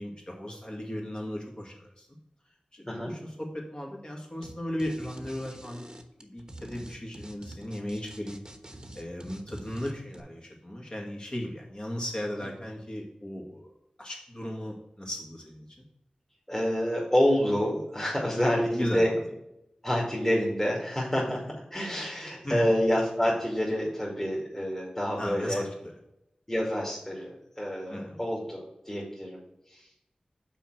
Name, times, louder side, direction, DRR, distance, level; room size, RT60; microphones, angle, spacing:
voice 1, 0.0-2.1 2.7-5.9 6.2-8.4 8.9-13.7 14.0-15.7 18.5-19.0 22.4-22.7 25.2-25.9 27.9-28.2, left 1 dB, 35° left, -1 dB, 2.2 m, -36 dB
sound 1, 4.4-4.5 4.8-10.2, right 1 dB, 30° right, 1.1 m, -46 dB
voice 2, 16.5-19.1 19.8-25.6 26.5-29.9, equal, 15° left, -4 dB, 2.3 m, -28 dB
5.7 x 4.5 x 6.2 m, 0.85 s
cardioid pair, 40°, 3 cm